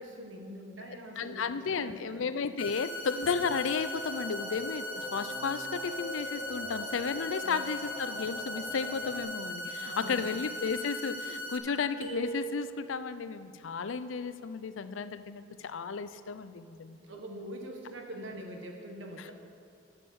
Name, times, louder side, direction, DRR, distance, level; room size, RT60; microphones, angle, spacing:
voice 1, 0.0-2.3 7.4-7.8 9.8-10.4 16.9-19.3, equal, 65° right, 2 dB, 1.4 m, -44 dB
voice 2, 1.2-17.0, left 5 dB, 75° left, 12 dB, 0.5 m, -33 dB
sound 1, 2.6-11.6, left 1 dB, 45° left, 1.1 m, -39 dB
sound 2, 3.2-9.2, left 3 dB, 15° right, 2.9 m, -43 dB
sound 3, 12.0-13.1, right 3 dB, 85° right, 1.7 m, -38 dB
9.6 x 7.4 x 6.9 m, 2.5 s
head